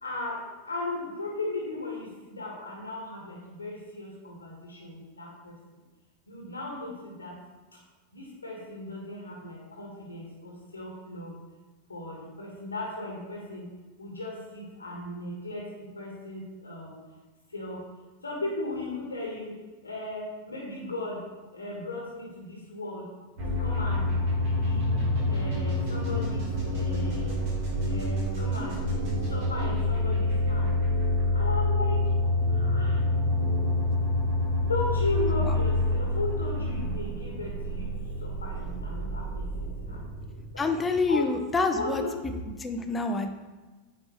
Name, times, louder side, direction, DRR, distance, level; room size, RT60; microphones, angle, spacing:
voice 1, 0.0-5.6 6.3-7.4 8.1-11.3 11.9-13.7 14.0-17.0 17.5-17.8 18.2-19.5 19.8-21.2 21.5-23.1 23.6-24.1 24.6-24.9 25.3-27.4 27.8-28.8 29.3-30.7 31.3-32.1 32.5-33.0 34.7-37.9 38.2-40.1 40.5-40.7 41.1-41.3 41.7-42.1, left 2 dB, 80° left, -2 dB, 1.3 m, -36 dB
sound 1, 23.4-41.1, left 1 dB, 45° right, 1.5 m, -27 dB
voice 2, 40.6-42.0 42.6-43.3, left 3 dB, 15° left, 6 dB, 0.6 m, -27 dB
8.8 x 4.4 x 3.0 m, 1.2 s
figure-of-eight pair, 90°, 0 cm